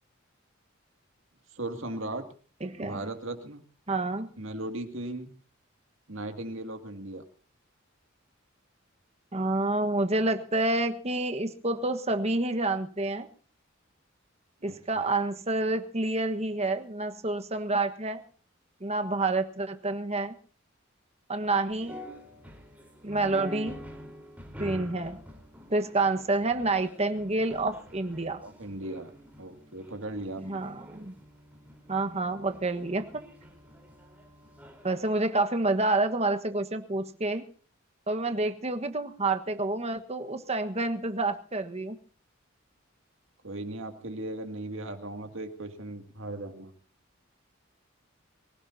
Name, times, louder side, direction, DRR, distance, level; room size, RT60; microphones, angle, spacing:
voice 1, 1.5-2.2 2.8-3.6 4.4-5.3 6.1-7.2 14.7-15.0 28.4-29.1 29.4-30.6 43.4-46.7, right 2 dB, 65° right, 5 dB, 2.3 m, -37 dB
voice 2, 2.6-3.1 3.9-4.3 9.3-13.3 14.6-18.2 18.8-20.3 21.3-22.0 23.0-23.8 24.6-25.2 25.7-28.4 30.4-31.1 31.9-33.2 34.8-37.4 38.1-42.0, right 2 dB, 30° right, 7 dB, 1.4 m, -28 dB
sound 1, 21.7-35.0, equal, 10° right, 3.9 m, -47 dB
24.5 x 16.5 x 2.8 m, 0.41 s
head